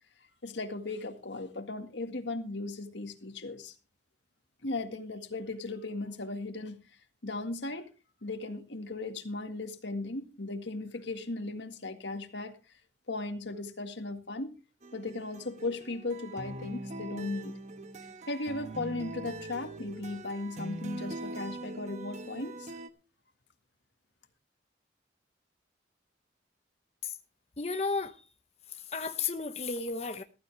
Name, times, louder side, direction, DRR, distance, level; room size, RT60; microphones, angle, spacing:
voice 1, 0.4-3.7 4.6-6.8 7.2-7.9 8.2-12.6 13.1-14.6 14.9-17.6 18.3-22.8, left 2 dB, 85° left, 1.9 m, -37 dB
sound 1, 14.8-22.9, right 2 dB, 40° right, 1.2 m, -42 dB
voice 2, 27.6-28.1 28.9-30.2, left 4 dB, 35° left, 1.0 m, -33 dB
15.0 x 15.0 x 3.4 m
head